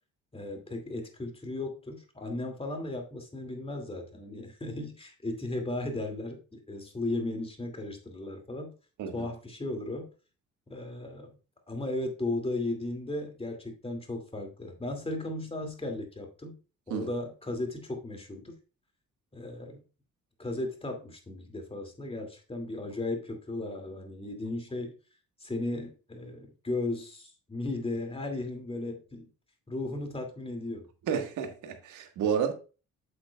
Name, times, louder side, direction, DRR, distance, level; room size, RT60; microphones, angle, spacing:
voice 1, 0.3-8.7 9.1-10.1 10.7-11.4 11.7-16.6 16.9-18.6 19.3-19.8 20.4-24.9 25.4-29.3 29.7-30.9, left 2 dB, 20° left, 2.4 m, -36 dB
voice 2, 31.1-32.5, right 7 dB, 85° right, 1.6 m, -30 dB
8.1 x 7.6 x 2.3 m
cardioid pair, 90°, 30 cm